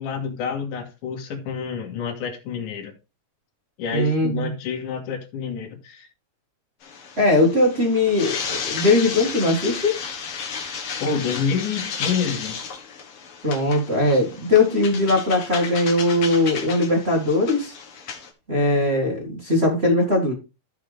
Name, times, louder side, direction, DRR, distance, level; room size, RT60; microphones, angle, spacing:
voice 1, 0.0-2.9 3.8-6.1 11.0-12.6, left 6 dB, 70° left, 3.1 m, -28 dB
voice 2, 3.9-4.5 7.2-10.0 13.4-17.7 18.5-20.3, left 2 dB, 25° right, 1.6 m, -20 dB
sound 1, 6.8-18.3, left 6 dB, 55° left, 1.8 m, -33 dB
14.5 x 5.2 x 3.4 m
omnidirectional pair, 3.8 m